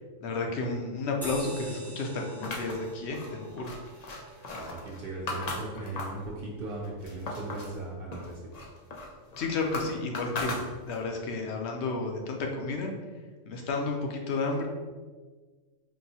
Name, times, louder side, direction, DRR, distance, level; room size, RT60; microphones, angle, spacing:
voice 1, 0.2-3.8 9.4-10.6 10.9-12.9 13.5-14.7, left 3 dB, 65° left, 1 dB, 0.8 m, -32 dB
sound 1, 1.2-6.1, right 1 dB, 5° left, 0.4 m, -47 dB
sound 2, 2.4-6.3 6.7-7.8 8.1-11.1, left 2 dB, 80° left, 0.3 m, -38 dB
voice 2, 4.2-8.4, right 2 dB, 60° right, -3 dB, 0.7 m, -38 dB
4.6 x 2.6 x 2.8 m, 1.4 s
omnidirectional pair, 1.4 m